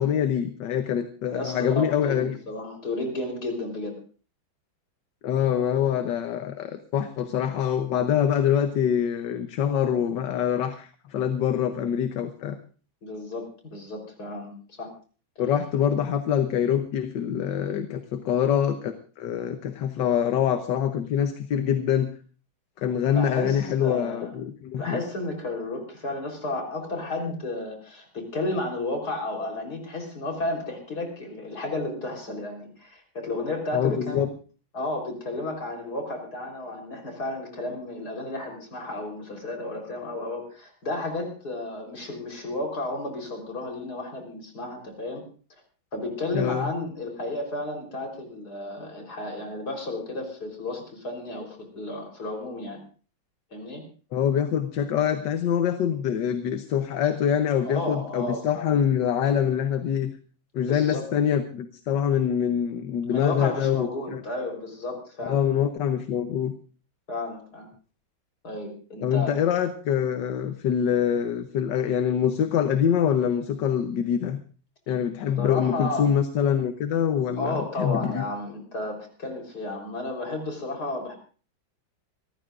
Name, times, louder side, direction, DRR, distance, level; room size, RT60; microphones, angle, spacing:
voice 1, 0.0-2.4 5.2-12.6 15.4-22.1 22.8-25.0 33.7-34.3 46.3-46.7 54.1-60.1 60.5-64.2 65.2-66.5 69.0-74.4 74.9-78.2, left 9 dB, 65° left, 8 dB, 1.5 m, -25 dB
voice 2, 1.3-4.0 13.0-14.9 23.1-24.3 24.8-34.3 34.7-45.2 45.9-52.8 53.5-53.8 57.6-58.7 60.6-61.0 63.1-65.4 67.1-67.7 68.4-69.3 75.4-76.1 77.4-81.2, left 2 dB, 50° left, 2 dB, 4.4 m, -32 dB
26.5 x 14.0 x 2.5 m, 0.37 s
omnidirectional pair, 2.1 m